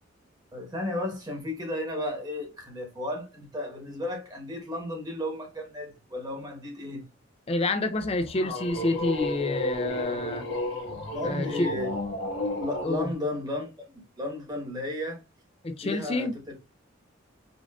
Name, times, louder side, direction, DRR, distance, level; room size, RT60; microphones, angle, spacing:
voice 1, 0.5-7.0 11.1-12.0 12.6-15.2 15.8-16.7, left 1 dB, 20° right, 1.3 m, -34 dB
voice 2, 7.5-10.4 11.2-11.7 12.8-13.1 15.6-16.3, left 2 dB, 30° left, 0.5 m, -28 dB
sound 1, 8.0-12.9, left 1 dB, 70° left, 1.7 m, -32 dB
5.2 x 2.5 x 2.4 m
head